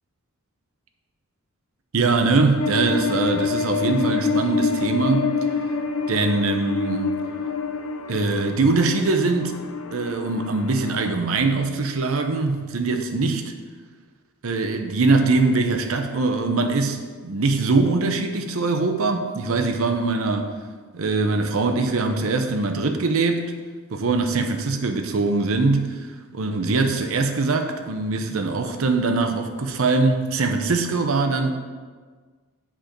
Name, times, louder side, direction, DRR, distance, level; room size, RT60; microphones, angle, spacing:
voice 1, 1.9-5.3 6.1-7.1 8.1-9.6 9.9-13.5 14.4-20.5 20.9-23.5 23.9-26.1 26.3-31.5, right 3 dB, 70° right, 6 dB, 0.7 m, -22 dB
sound 1, 2.6-11.1, left 5 dB, 65° left, 0.6 m, -27 dB
7.3 x 4.5 x 5.2 m, 1.5 s
head